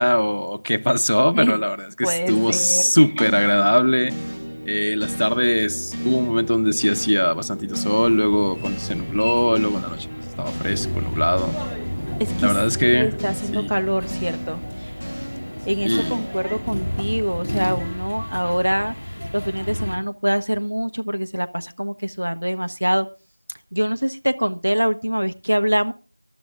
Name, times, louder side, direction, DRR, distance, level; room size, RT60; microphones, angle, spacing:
voice 1, 0.0-4.1 4.7-10.1 10.4-11.6 12.4-13.1 13.5-13.7 15.8-16.2, equal, 60° left, 0.9 m, -20 dB
voice 2, 2.0-3.3 12.2-12.5 12.9-14.9 15.7-19.0 19.3-23.1 23.7-25.9, equal, 65° right, 1.2 m, -24 dB
sound 1, 2.3-18.6, equal, 85° right, 1.7 m, -33 dB
sound 2, 8.0-20.0, equal, 25° left, 2.9 m, -31 dB
24.0 x 12.0 x 2.5 m
figure-of-eight pair, 180°, 0 cm